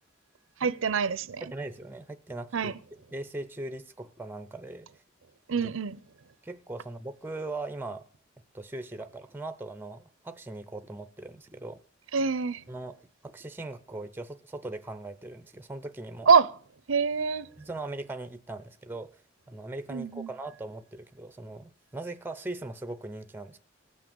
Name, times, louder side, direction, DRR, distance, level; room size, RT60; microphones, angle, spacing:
voice 1, 0.6-1.4 2.5-2.7 5.5-6.0 12.1-12.6 16.3-16.5 16.9-17.5 19.9-20.3, right 5 dB, 80° right, 0.6 m, -25 dB
voice 2, 1.4-2.7 3.1-4.9 5.5-5.7 6.4-8.1 8.5-11.8 12.7-16.3 17.6-19.1 19.5-23.6, right 2 dB, 10° right, 0.6 m, -39 dB
17.5 x 6.1 x 6.9 m
head